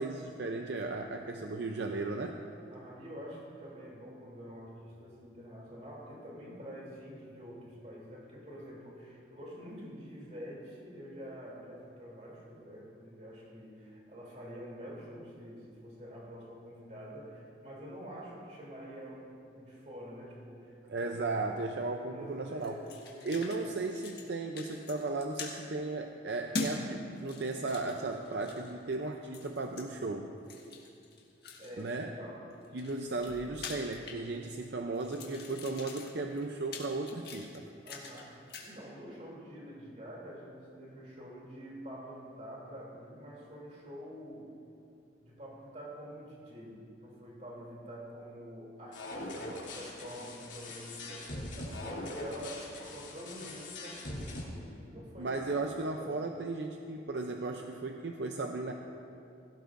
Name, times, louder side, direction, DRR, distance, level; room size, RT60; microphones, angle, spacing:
voice 1, 0.0-2.4 20.8-22.8 23.2-30.3 31.8-32.1 32.7-37.6 55.2-58.7, right 3 dB, 70° right, 3 dB, 0.6 m, -35 dB
voice 2, 2.7-21.1 22.1-23.4 31.6-32.5 37.8-44.5 45.2-56.2, equal, 40° right, -3 dB, 2.9 m, -47 dB
sound 1, 22.6-23.6 23.9-24.3 24.6-25.6 26.5-26.8 27.2-28.7 29.3-29.9 30.5-31.9 32.5-34.7 35.0-38.2 38.5-38.7, left 3 dB, 55° left, 1.7 m, -43 dB
sound 2, 48.9-54.4, left 1 dB, 90° left, 2.8 m, -42 dB
17.0 x 16.0 x 2.6 m, 2.6 s
head